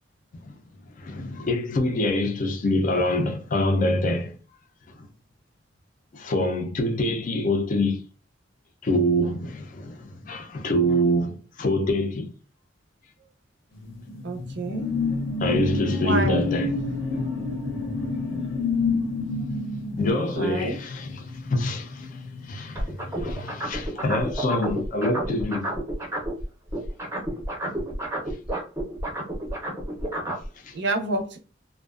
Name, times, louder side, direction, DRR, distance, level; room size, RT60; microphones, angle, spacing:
voice 1, 1.0-4.3 5.0-5.1 6.1-8.0 8.8-12.3 15.4-16.7 20.0-25.7 30.6-30.7, left 1 dB, 45° left, 0.4 m, -25 dB
sound 1, 13.8-22.8 23.2-23.4, left 3 dB, 80° left, 0.7 m, -28 dB
voice 2, 14.2-14.9 16.0-16.4 20.3-20.8 30.7-31.4, right 2 dB, 65° right, 0.5 m, -28 dB
sound 2, 22.8-26.4 26.7-30.5, right 1 dB, 15° right, 0.5 m, -30 dB
2.4 x 2.2 x 2.3 m
head